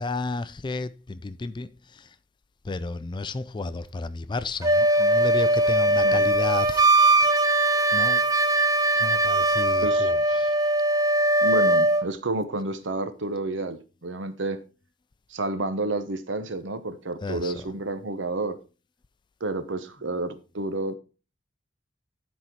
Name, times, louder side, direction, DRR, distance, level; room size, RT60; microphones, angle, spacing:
voice 1, 0.0-2.0 2.6-6.9 7.2-7.3 7.9-8.2 9.0-10.5 17.2-17.7, left 3 dB, 25° left, 0.4 m, -32 dB
Wind instrument woodwind instrument, 4.6-12.1, right 1 dB, 20° right, 0.7 m, -20 dB
voice 2, 9.8-10.1 11.4-14.6 15.3-18.6 19.4-21.0, right 2 dB, 75° right, 1.0 m, -30 dB
12.0 x 4.2 x 4.6 m
head